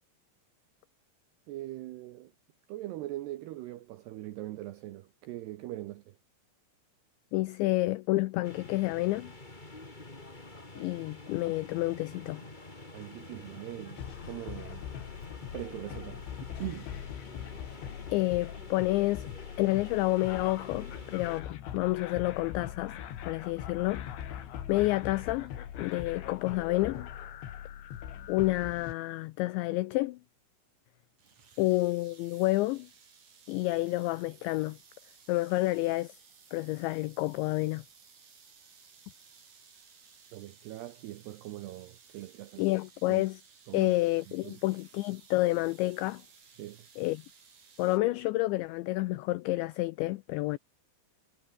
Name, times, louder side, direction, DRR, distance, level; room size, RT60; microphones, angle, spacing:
voice 1, 1.5-2.3 2.7-6.2 12.9-14.0 14.3-14.9 15.5-16.2 16.6-16.9 40.3-42.7 43.1-43.2 43.7-44.6 46.6-46.9, right 15 dB, 85° right, 2.4 m, -41 dB
voice 2, 7.3-9.3 10.8-12.4 18.1-19.3 19.6-22.9 23.3-24.1 24.7-27.1 28.3-30.2 31.6-32.9 33.5-34.8 35.3-36.1 36.5-37.8 42.6-43.4 43.7-46.2 47.0-47.2 47.8-50.6, left 19 dB, 85° left, 2.6 m, -29 dB
sound 1, 8.4-21.4, left 2 dB, 15° left, 1.9 m, -48 dB
sound 2, 14.0-28.9, left 10 dB, 65° left, 4.8 m, -41 dB
sound 3, 31.2-48.0, right 6 dB, 35° right, 4.8 m, -58 dB
omnidirectional pair, 6.0 m